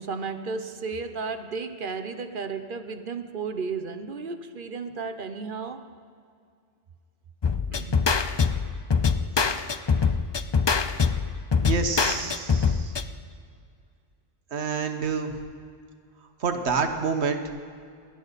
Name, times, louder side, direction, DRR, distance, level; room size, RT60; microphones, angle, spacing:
voice 1, 0.0-5.9 7.7-8.0, right 4 dB, 55° right, 9 dB, 0.9 m, -33 dB
sound 1, 7.4-13.0, left 5 dB, 40° left, 0.4 m, -24 dB
voice 2, 11.6-12.9 14.5-15.3 16.4-17.4, right 5 dB, 80° right, 6 dB, 1.5 m, -28 dB
29.0 x 11.0 x 4.1 m, 2.2 s
omnidirectional pair, 1.1 m